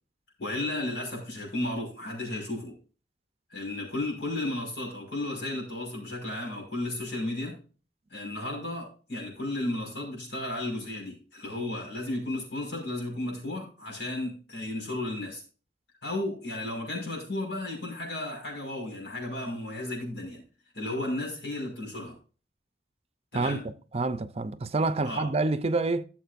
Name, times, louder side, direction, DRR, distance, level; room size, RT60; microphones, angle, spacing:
voice 1, 0.4-2.8 3.5-7.6 8.1-15.4 16.0-20.4 20.7-22.1 23.3-23.6 25.0-25.3, left 1 dB, 80° left, 5.7 m, -34 dB
voice 2, 23.9-26.0, right 3 dB, 35° right, 0.6 m, -27 dB
16.0 x 7.4 x 2.6 m
head